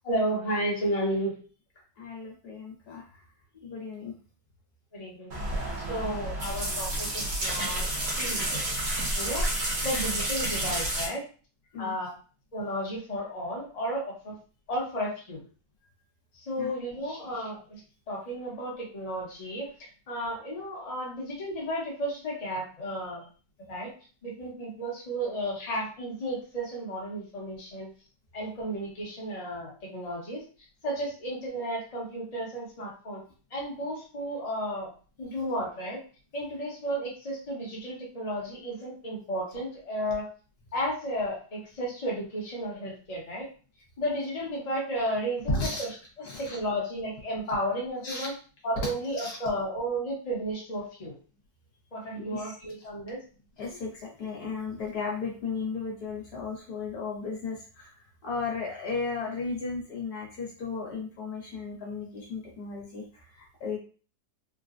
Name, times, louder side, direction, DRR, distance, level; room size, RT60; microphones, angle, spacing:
voice 1, 0.0-1.4 4.9-5.3 5.9-7.8 8.2-8.4 9.2-9.5 9.8-11.2 11.8-12.1 12.5-14.4 14.7-15.4 16.5-17.8 18.1-19.7 20.1-23.2 23.7-23.9 24.2-27.9 28.3-30.4 30.8-33.2 33.5-34.9 35.2-36.0 36.3-40.3 40.7-43.5 44.0-45.9 46.4-48.3 48.6-51.1 51.9-53.2, equal, 30° left, -4 dB, 0.9 m, -33 dB
voice 2, 2.0-3.1 3.6-4.1 11.7-11.9 16.6-16.7 45.5-45.9 46.2-46.6 48.0-48.3 48.8-48.9 49.2-49.4 52.1-52.5 53.6-57.9 58.2-63.8, left 4 dB, 65° left, -1 dB, 1.3 m, -35 dB
sound 1, 5.3-11.1, right 1 dB, 55° right, 1.2 m, -30 dB
3.7 x 2.2 x 2.5 m, 0.39 s
omnidirectional pair, 1.8 m